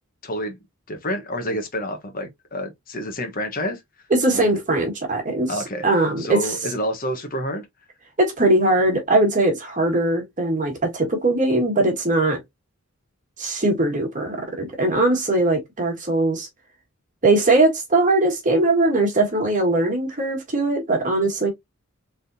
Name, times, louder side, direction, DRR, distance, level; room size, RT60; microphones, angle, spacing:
voice 1, 0.2-0.6 0.9-3.8 4.3-4.6 5.5-5.8 6.2-7.7, equal, 40° left, 1.1 m, -28 dB
voice 2, 4.1-6.6 8.2-12.4 13.4-16.5 17.2-21.5, right 2 dB, 35° right, 1.7 m, -20 dB
4.2 x 3.5 x 2.6 m
head